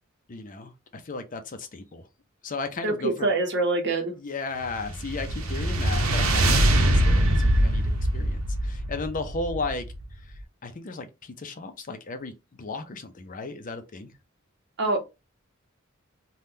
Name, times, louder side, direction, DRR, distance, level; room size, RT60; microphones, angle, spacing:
voice 1, 0.3-2.1 2.4-3.3 4.2-9.9 10.2-14.1, left 3 dB, 40° left, 0.6 m, -35 dB
voice 2, 2.8-4.1 14.8-15.0, right 2 dB, 55° right, 1.1 m, -25 dB
sound 1, 4.7-10.1, right 1 dB, 85° right, 0.7 m, -23 dB
3.5 x 2.3 x 2.7 m
head